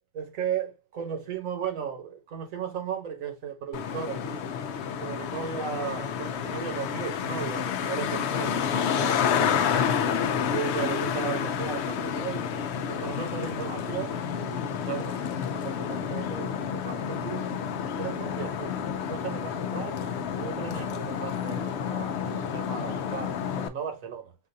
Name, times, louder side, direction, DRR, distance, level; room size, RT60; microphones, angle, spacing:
voice 1, 0.1-4.5 4.9-8.7 9.0-9.7 10.4-12.5 12.8-17.5 18.0-18.8 19.0-20.0 20.4-24.4, right 7 dB, 80° right, 1.4 m, -36 dB
Traffic noise roadway noise, 3.7-23.7, left 7 dB, 65° left, 0.8 m, -29 dB
6.0 x 2.5 x 2.6 m
omnidirectional pair, 1.4 m